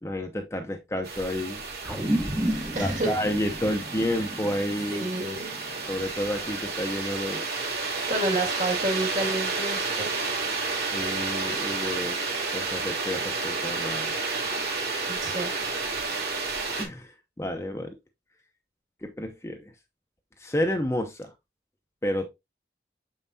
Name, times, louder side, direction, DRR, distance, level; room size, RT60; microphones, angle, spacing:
voice 1, 0.0-1.6 2.7-5.1 5.9-7.5 10.9-12.2 12.5-14.1 16.8-17.1 17.4-18.0 19.0-19.7 20.4-21.3 22.0-22.3, left 1 dB, 15° left, 0.7 m, -30 dB
sound 1, 1.0-16.8, right 4 dB, 65° right, 2.6 m, -31 dB
sound 2, 1.9-6.6, equal, 10° right, 0.9 m, -32 dB
voice 2, 2.5-3.2 4.9-5.6 8.1-10.4 15.1-15.5, right 1 dB, 45° right, 2.1 m, -30 dB
7.1 x 5.5 x 2.7 m
head